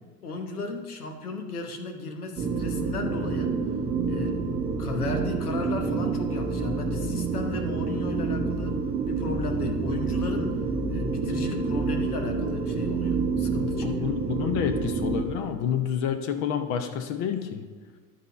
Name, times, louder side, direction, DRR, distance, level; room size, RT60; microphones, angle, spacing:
voice 1, 0.2-3.6 4.1-8.8 9.1-10.6 10.9-14.1, left 3 dB, 75° left, 5 dB, 1.1 m, -35 dB
sound 1, 2.4-15.2, right 4 dB, 15° right, 0.4 m, -28 dB
voice 2, 13.8-17.6, left 8 dB, 40° left, 8 dB, 0.6 m, -28 dB
11.0 x 4.2 x 5.7 m, 1.5 s
figure-of-eight pair, 75°, 45 cm